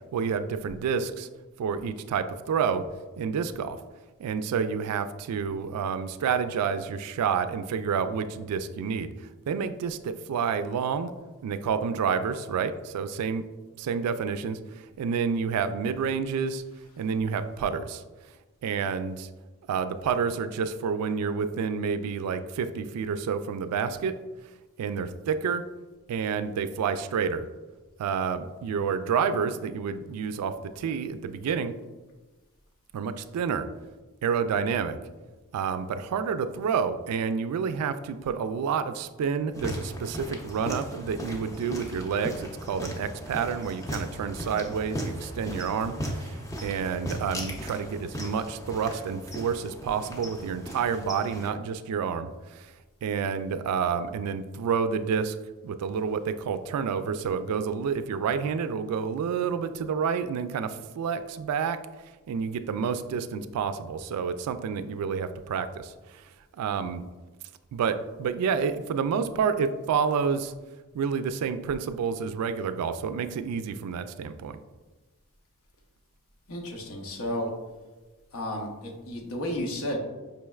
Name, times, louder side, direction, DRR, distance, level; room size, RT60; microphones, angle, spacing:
voice 1, 0.1-1.3 1.6-2.9 3.2-3.8 4.2-9.1 9.5-11.1 11.4-13.4 13.8-14.6 15.0-16.6 17.0-18.0 18.6-19.3 19.7-24.2 24.8-25.6 26.1-27.4 28.0-31.8 32.9-33.7 34.2-35.0 35.5-52.7 53.0-55.4 55.6-61.8 62.3-66.2 66.6-67.1 67.7-70.5 70.9-74.6, right 6 dB, 90° right, 13 dB, 0.3 m, -29 dB
sound 1, 39.5-51.5, equal, 15° left, 0.5 m, -37 dB
voice 2, 76.5-77.5 78.3-80.0, left 1 dB, 85° left, 0 dB, 0.8 m, -32 dB
5.4 x 3.1 x 2.3 m, 1.2 s
head